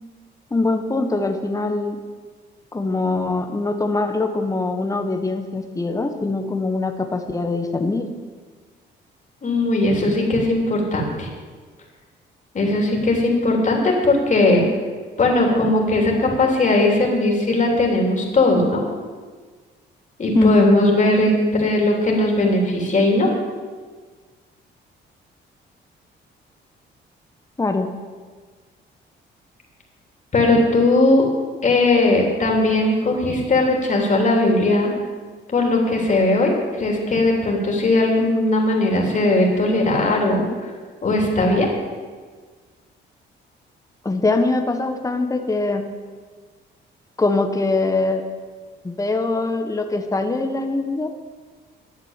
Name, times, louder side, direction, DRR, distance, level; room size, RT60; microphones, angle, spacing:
voice 1, 0.5-2.0 2.7-8.1 20.3-20.8 27.6-27.9 44.0-45.9 47.2-48.2 48.8-51.1, left 3 dB, 15° left, 5 dB, 1.2 m, -22 dB
voice 2, 9.4-11.3 12.5-14.7 15.2-18.8 20.2-23.3 30.3-31.3 31.6-34.9 35.5-40.5 41.0-41.7, left 2 dB, 40° left, 0 dB, 3.3 m, -18 dB
12.0 x 7.4 x 7.4 m, 1.5 s
cardioid pair, 90°, 20 cm